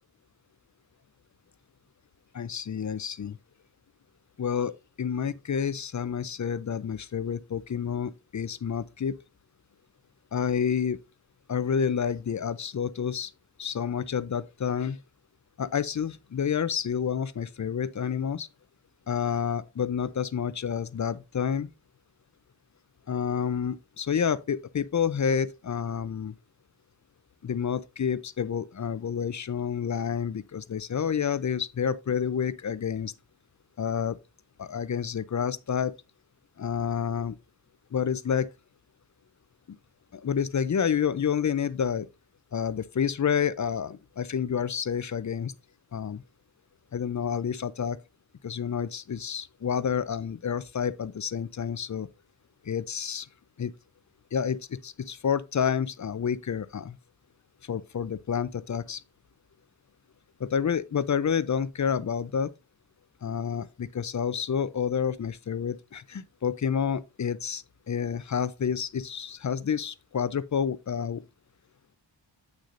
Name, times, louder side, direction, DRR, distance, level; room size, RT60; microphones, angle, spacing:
voice 1, 2.3-3.4 4.4-9.2 10.3-11.0 11.5-13.3 13.6-15.0 15.6-18.5 19.1-21.7 23.1-26.4 27.4-33.1 33.8-34.2 34.6-35.9 36.6-37.4 37.9-38.5 40.1-42.1 42.5-45.5 45.9-46.2 46.9-48.0 48.4-52.1 52.6-53.3 53.6-53.7 54.3-57.0 57.6-59.0 60.4-62.5 63.2-71.2, left 7 dB, 40° left, 0.5 m, -29 dB
8.3 x 6.4 x 2.5 m
wide cardioid pair, 80°, 45 cm